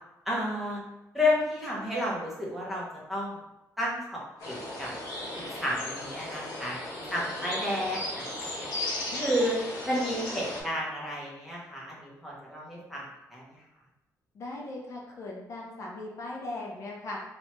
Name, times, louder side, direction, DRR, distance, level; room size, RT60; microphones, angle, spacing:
voice 1, 0.3-0.8 1.1-3.4 3.8-4.9 5.4-8.7 9.2-9.6 9.9-13.0 13.3-13.6, left 1 dB, 5° right, -6 dB, 0.6 m, -31 dB
sound 1, 4.4-10.6, left 1 dB, 85° left, 0.9 m, -36 dB
voice 2, 9.1-9.5 14.3-17.2, left 2 dB, 45° left, -2 dB, 0.5 m, -39 dB
2.9 x 2.2 x 2.9 m, 0.93 s
cardioid pair, 170°, 7 cm